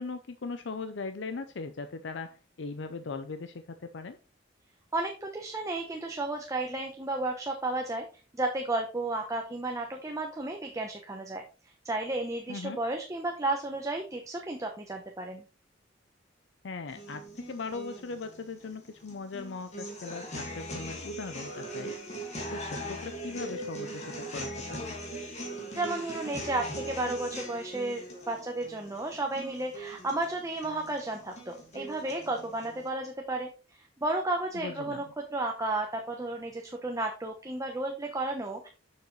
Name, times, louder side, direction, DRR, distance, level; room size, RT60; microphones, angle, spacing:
voice 1, 0.0-4.2 12.5-12.8 16.6-21.9 22.5-25.0 34.5-35.1, left 4 dB, 70° left, 9 dB, 0.6 m, -39 dB
voice 2, 4.9-8.1 8.3-11.4 11.8-15.4 25.8-38.7, right 2 dB, 15° right, 2 dB, 0.9 m, -33 dB
sound 1, 16.9-32.9, right 1 dB, 40° left, 2.1 m, -40 dB
7.0 x 6.8 x 3.2 m, 0.34 s
head